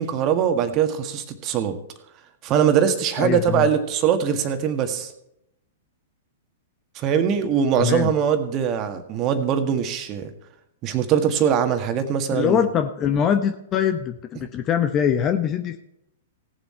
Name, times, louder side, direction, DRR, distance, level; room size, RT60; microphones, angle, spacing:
voice 1, 0.0-1.8 2.4-5.1 6.9-10.3 10.8-12.6, right 8 dB, 35° right, 7 dB, 1.7 m, -22 dB
voice 2, 3.2-3.7 7.8-8.1 12.3-15.8, left 8 dB, 30° left, 7 dB, 0.8 m, -23 dB
17.5 x 7.4 x 4.4 m, 0.79 s
hypercardioid pair, 110°, 0 cm